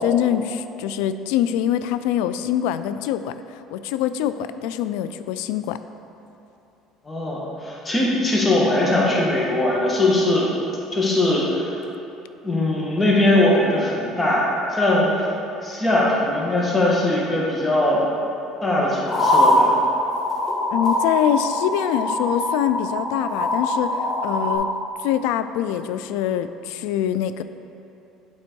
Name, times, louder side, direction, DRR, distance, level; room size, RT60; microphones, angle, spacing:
voice 1, 0.0-5.8 20.7-24.7 25.0-27.4, left 10 dB, 80° left, 11 dB, 0.3 m, -24 dB
voice 2, 7.0-10.5 10.9-11.7 12.4-15.3 15.6-18.0 18.6-19.7, left 1 dB, 20° left, -4 dB, 1.6 m, -20 dB
sound 1, 19.1-24.5, left 1 dB, 40° left, 1.5 m, -22 dB
8.6 x 4.3 x 4.6 m, 2.8 s
supercardioid pair, 95°, 0 cm